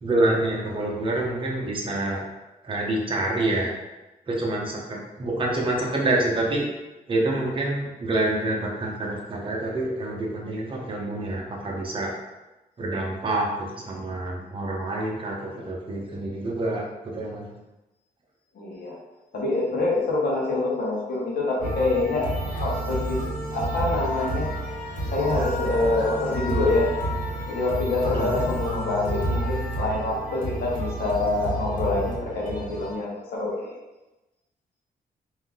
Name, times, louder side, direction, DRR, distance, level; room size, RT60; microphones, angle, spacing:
voice 1, 0.0-2.2 2.6-3.7 4.3-6.6 7.1-12.1 12.8-17.4 28.1-28.5, right 2 dB, 35° right, -2 dB, 0.9 m, -27 dB
voice 2, 18.5-18.9 19.3-22.3 22.6-23.2 23.5-24.5 25.1-26.9 27.5-33.8, left 2 dB, 80° left, -4 dB, 1.1 m, -26 dB
sound 1, 21.6-32.9, right 1 dB, 55° left, 1.4 m, -30 dB
3.6 x 2.7 x 3.6 m, 1.0 s
wide cardioid pair, 135°, 16 cm